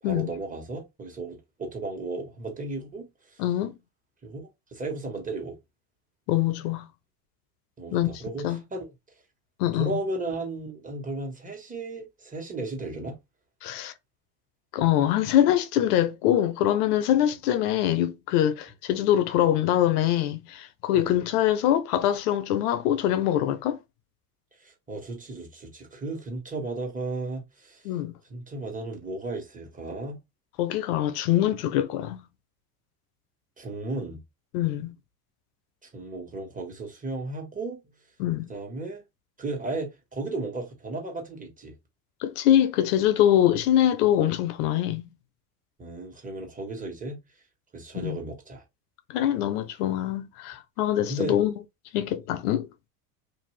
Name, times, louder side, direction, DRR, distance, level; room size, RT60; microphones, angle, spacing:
voice 1, 0.0-3.4 4.2-5.6 7.8-8.9 9.7-13.2 20.9-21.1 24.6-27.9 28.3-30.2 33.6-34.2 35.8-37.8 38.5-39.0 39.4-41.7 45.8-47.2 47.7-48.6 51.1-51.4, right 2 dB, 15° right, 1.3 m, -35 dB
voice 2, 3.4-3.8 6.3-6.9 7.9-8.1 8.4-8.6 9.6-10.0 13.6-13.9 14.7-23.8 27.8-28.1 30.6-32.2 34.5-34.9 38.2-38.5 42.2-45.0 47.9-48.2 49.1-51.5 51.9-52.7, left 11 dB, 75° left, 0.6 m, -24 dB
2.6 x 2.5 x 3.2 m
supercardioid pair, 100°, 46 cm